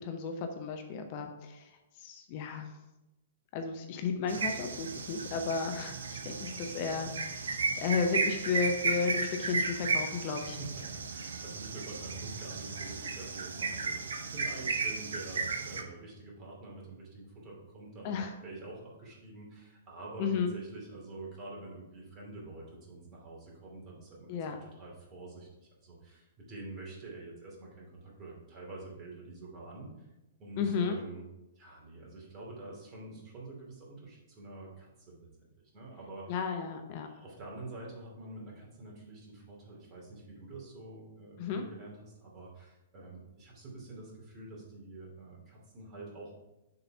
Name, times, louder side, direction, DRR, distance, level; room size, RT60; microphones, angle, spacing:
voice 1, 0.0-1.7 2.0-2.7 3.5-10.6 18.0-18.3 20.2-20.5 24.3-24.6 30.6-31.0 36.3-37.1 41.4-41.6, left 5 dB, 40° left, 5 dB, 0.7 m, -33 dB
sound 1, 4.3-15.8, right 4 dB, 65° right, 0.7 m, -34 dB
voice 2, 10.6-30.1 30.4-31.2 31.5-35.5 35.7-36.4 37.0-46.4, right 2 dB, 30° right, -3 dB, 2.6 m, -47 dB
6.7 x 4.0 x 5.5 m, 0.97 s
figure-of-eight pair, 110°, 0 cm